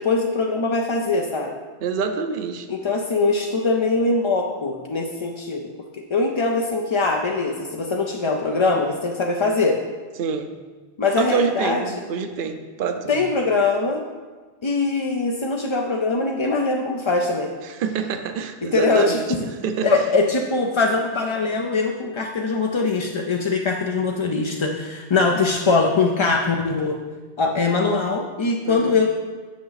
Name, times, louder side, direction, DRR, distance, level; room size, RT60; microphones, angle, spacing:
voice 1, 0.0-1.5 2.7-5.6 6.1-9.8 11.0-12.0 13.1-14.0 14.6-17.5 18.6-19.2 19.8-27.0 27.4-29.1, left 3 dB, 40° left, 1 dB, 0.4 m, -22 dB
voice 2, 1.8-2.7 10.2-10.5 11.2-13.3 17.6-20.0 28.6-29.0, right 6 dB, 55° right, 8 dB, 0.7 m, -26 dB
9.3 x 6.0 x 4.0 m, 1.4 s
omnidirectional pair, 1.2 m